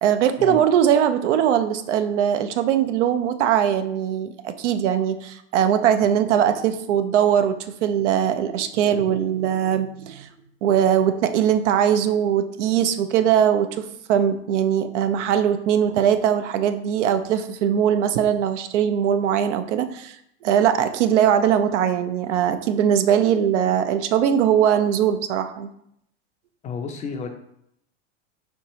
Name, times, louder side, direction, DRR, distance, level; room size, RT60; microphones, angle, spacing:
voice 1, 0.0-10.3 10.6-20.2 20.4-25.7, right 9 dB, 85° right, 9 dB, 0.5 m, -21 dB
voice 2, 26.6-27.3, left 5 dB, 20° left, 4 dB, 0.4 m, -31 dB
4.5 x 2.7 x 4.1 m, 0.74 s
supercardioid pair, 120°, 35 cm